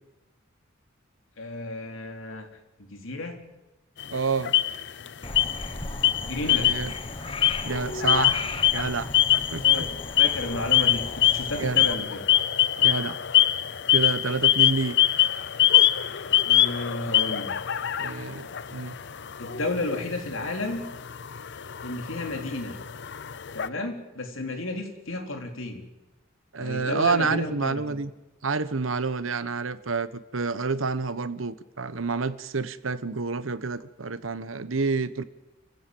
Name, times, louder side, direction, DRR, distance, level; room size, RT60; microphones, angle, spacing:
voice 1, 1.4-2.5 2.8-3.4 6.2-6.7 9.6-9.9 10.2-12.2 16.4-17.5 19.4-20.8 21.8-22.8 23.5-25.9 26.6-28.0, left 2 dB, 80° left, 4 dB, 3.4 m, -32 dB
sound 1, 4.0-5.1 5.3-5.7 6.0-7.0 7.3-23.7, left 12 dB, 60° left, 0.7 m, -24 dB
voice 2, 4.1-4.5 6.4-6.9 7.6-8.5 8.7-9.1 9.5-9.9 11.5-11.9 12.8-13.2 13.9-14.9 18.0-19.0 26.5-28.1 28.4-35.2, right 4 dB, 80° right, 15 dB, 1.1 m, -28 dB
Frog, 5.2-11.9, left 2 dB, 25° left, 1.4 m, -37 dB
29.0 x 15.5 x 7.7 m, 1.0 s
head